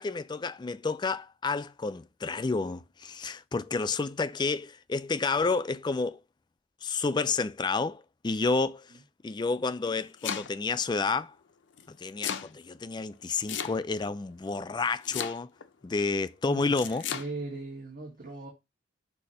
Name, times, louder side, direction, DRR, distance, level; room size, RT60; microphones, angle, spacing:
voice 1, 0.0-6.2 6.8-8.9 9.2-11.3 11.9-15.5 15.8-17.0, left 4 dB, 25° left, 0.3 m, -30 dB
Domestic sounds home sounds, 9.7-10.7 11.8-12.5 13.5-14.1 15.0-15.7 16.7-17.3, left 8 dB, 85° left, 0.6 m, -35 dB
voice 2, 16.4-18.5, right 2 dB, 50° right, 1.6 m, -39 dB
6.5 x 2.8 x 5.5 m
head